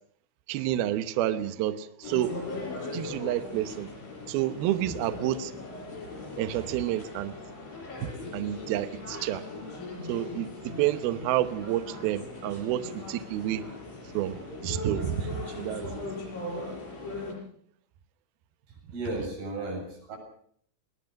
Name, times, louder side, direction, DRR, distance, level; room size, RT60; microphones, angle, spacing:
voice 1, 0.5-2.4 2.9-3.9 4.3-5.5 6.4-7.3 8.0-9.4 10.1-10.5 10.8-13.7 14.1-16.0, right 13 dB, 80° right, 11 dB, 2.2 m, -29 dB
sound 1, 2.0-17.3, left 3 dB, 75° left, 9.5 m, -39 dB
voice 2, 18.7-20.2, right 2 dB, 50° right, 3 dB, 9.1 m, -35 dB
21.5 x 19.5 x 6.4 m, 0.62 s
omnidirectional pair, 5.6 m